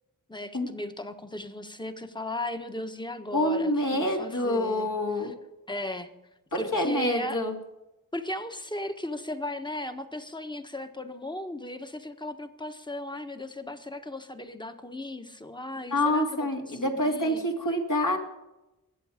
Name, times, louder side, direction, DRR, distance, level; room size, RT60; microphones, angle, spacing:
voice 1, 0.3-4.9 5.2-5.3 5.7-6.1 6.6-7.4 8.1-17.4, left 1 dB, 15° left, 7 dB, 1.4 m, -36 dB
voice 2, 3.3-5.3 6.5-7.6 15.9-18.2, left 1 dB, 60° left, 0 dB, 2.8 m, -26 dB
22.0 x 7.9 x 5.1 m, 0.96 s
wide cardioid pair, 50°, 35 cm